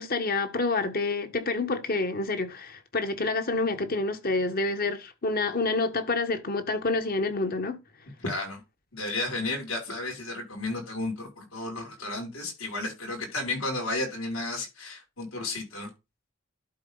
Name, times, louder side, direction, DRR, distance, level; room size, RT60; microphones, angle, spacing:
voice 1, 0.0-7.8, left 3 dB, 45° left, 1.3 m, -28 dB
voice 2, 8.2-8.6 8.9-15.9, left 2 dB, 80° left, 5.7 m, -33 dB
12.0 x 4.2 x 3.9 m
head